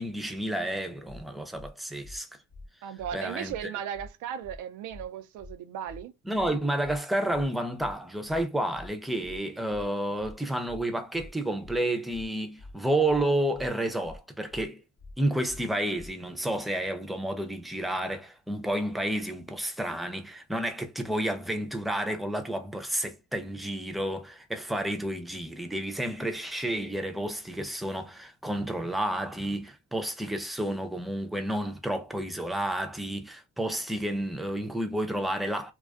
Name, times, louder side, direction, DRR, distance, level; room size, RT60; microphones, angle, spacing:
voice 1, 0.0-2.3 3.1-3.7 6.3-14.8 15.2-35.7, right 1 dB, ahead, 0.4 m, -30 dB
sound 1, 1.1-1.2 1.5-1.7 2.0-2.2 2.5-2.7 3.0-3.1 3.5-3.6 3.9-4.1 4.4-4.6 4.9-5.1 5.4-5.5 5.9-6.0 6.3-6.5 6.8-7.0 7.3-7.5 7.8-7.9 8.3-8.4 8.7-8.9 9.2-9.4 9.7-9.9 10.2-10.3 10.7-10.8 11.1-11.3 11.6-11.8 12.1-12.3 12.6-12.7 13.1-13.2 13.5-13.7 14.0-14.2 14.5-14.7 15.0-15.1 15.5-15.6 15.9-16.1, left 2 dB, 30° left, 0.7 m, -46 dB
voice 2, 2.8-6.1, right 9 dB, 85° right, 0.5 m, -36 dB
2.4 x 2.3 x 2.3 m
cardioid pair, 90°, 30 cm